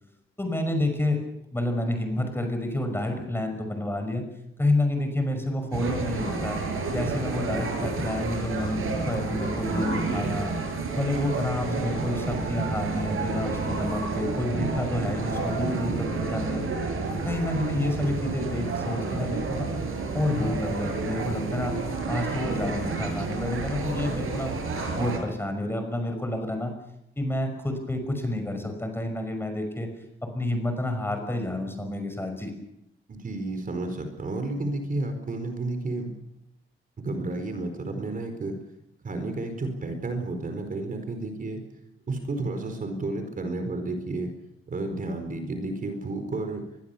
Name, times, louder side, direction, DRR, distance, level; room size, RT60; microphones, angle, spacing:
voice 1, 0.4-1.2 1.5-4.3 4.6-6.6 6.9-10.5 10.9-16.7 17.2-19.7 20.1-21.7 22.1-24.5 25.0-26.7 27.2-29.9 30.2-32.5, left 1 dB, 10° left, 5 dB, 5.6 m, -29 dB
sound 1, 5.7-25.2, right 4 dB, 80° right, 7.1 m, -30 dB
voice 2, 9.7-10.3 33.1-36.1 37.0-38.6 39.0-41.6 42.1-44.3 44.7-46.6, right 2 dB, 40° right, 7 dB, 4.4 m, -31 dB
24.5 x 21.0 x 7.0 m, 0.83 s
wide cardioid pair, 145°, 21 cm